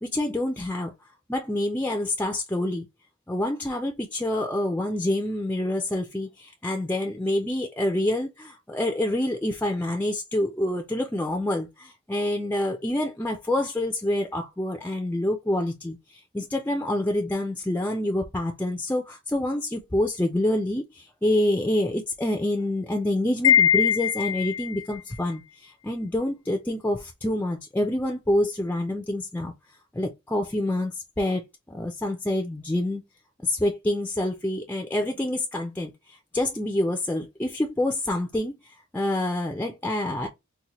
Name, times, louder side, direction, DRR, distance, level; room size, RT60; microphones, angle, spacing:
voice 1, 0.0-0.9 1.3-2.9 3.3-29.5 29.9-31.4 31.7-33.0 33.4-38.5 38.9-40.3, left 1 dB, 10° left, 0.4 m, -27 dB
Wind chime, 23.4-24.8, left 9 dB, 85° left, 0.9 m, -21 dB
4.0 x 2.1 x 2.9 m
head